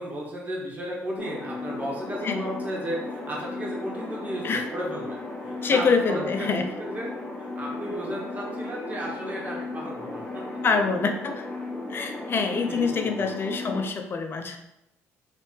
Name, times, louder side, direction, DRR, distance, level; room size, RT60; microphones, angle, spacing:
voice 1, 0.0-7.1 7.4-10.6 11.8-12.0 12.7-13.3, equal, 30° right, -3 dB, 1.6 m, -34 dB
sound 1, 1.2-13.8, left 2 dB, 10° left, 1.1 m, -35 dB
voice 2, 5.6-6.7 10.6-11.5 11.9-14.6, left 5 dB, 40° left, 5 dB, 0.6 m, -25 dB
3.3 x 3.3 x 4.5 m, 0.85 s
cardioid pair, 90°, 6 cm